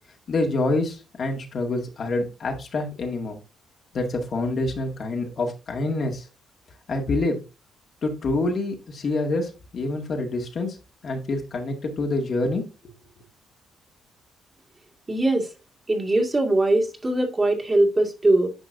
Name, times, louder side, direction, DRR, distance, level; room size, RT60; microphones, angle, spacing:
voice 1, 0.3-3.4 3.9-6.3 6.9-7.4 8.0-10.8 11.0-12.6, left 2 dB, 50° left, 2.0 m, -26 dB
voice 2, 15.1-15.5 15.9-18.5, right 2 dB, 25° right, 2.1 m, -21 dB
10.0 x 5.4 x 2.7 m
cardioid pair, 90°, 0 cm